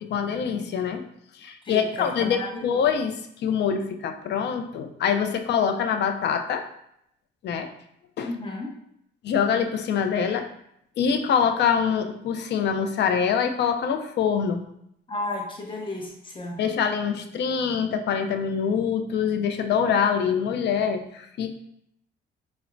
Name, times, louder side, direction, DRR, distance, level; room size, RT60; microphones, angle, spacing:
voice 1, 0.0-1.0 1.4-6.7 7.4-7.7 8.2-8.3 9.2-10.5 11.0-14.6 16.6-21.5, left 7 dB, 60° left, 6 dB, 0.4 m, -25 dB
voice 2, 1.6-2.6 8.2-8.7 15.1-16.6, left 2 dB, 25° left, -1 dB, 0.8 m, -33 dB
4.2 x 2.1 x 2.5 m, 0.76 s
cardioid pair, 90°, 20 cm